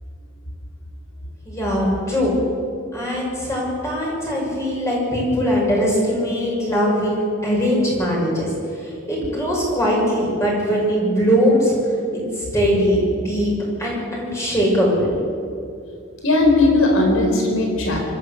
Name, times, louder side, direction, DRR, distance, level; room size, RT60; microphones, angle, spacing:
voice 1, 1.4-2.4 2.9-8.5 8.8-11.7 12.1-13.5 13.8-15.1, equal, 15° left, -4 dB, 6.2 m, -21 dB
voice 2, 16.2-18.0, left 2 dB, 75° left, 1 dB, 4.6 m, -17 dB
24.5 x 13.0 x 8.0 m, 2.4 s
head